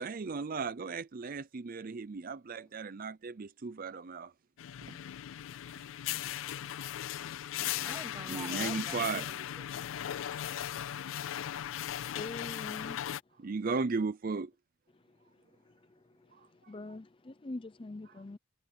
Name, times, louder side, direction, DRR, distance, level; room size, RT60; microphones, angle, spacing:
voice 1, 0.0-4.3 4.9-5.0 8.3-9.4 13.4-14.5 18.1-18.2, right 4 dB, 45° right, 0.5 m, -36 dB
sound 1, 4.6-13.2, left 11 dB, 90° left, 0.4 m, -38 dB
voice 2, 7.3-9.8, right 1 dB, 15° right, 2.5 m, -49 dB
voice 3, 12.2-13.0 16.7-18.4, left 2 dB, 25° left, 0.5 m, -43 dB
head